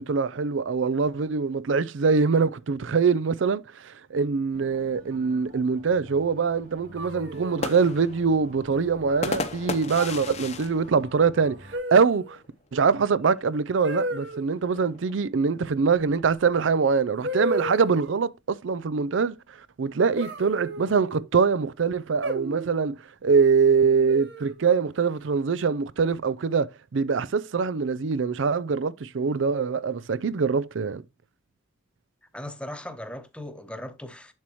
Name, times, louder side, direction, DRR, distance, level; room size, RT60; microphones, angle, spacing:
voice 1, 0.0-11.6 11.9-12.4 12.7-19.4 19.8-31.0, right 5 dB, 75° right, 0.5 m, -23 dB
sound 1, 4.5-11.8, left 1 dB, 40° right, 2.1 m, -49 dB
sound 2, 7.0-7.8 9.1-9.5 9.9-10.3 11.7-12.4 13.8-14.4 16.4-16.5 17.2-18.2 20.2-21.2 22.2-22.9 24.1-24.7, equal, 60° right, 1.4 m, -33 dB
sound 3, 7.3-12.0 12.4-12.5 12.7-13.2 14.1-15.6, left 3 dB, 35° left, 0.8 m, -35 dB
voice 2, 32.3-34.3, left 1 dB, 5° left, 0.9 m, -38 dB
7.5 x 7.3 x 3.1 m
head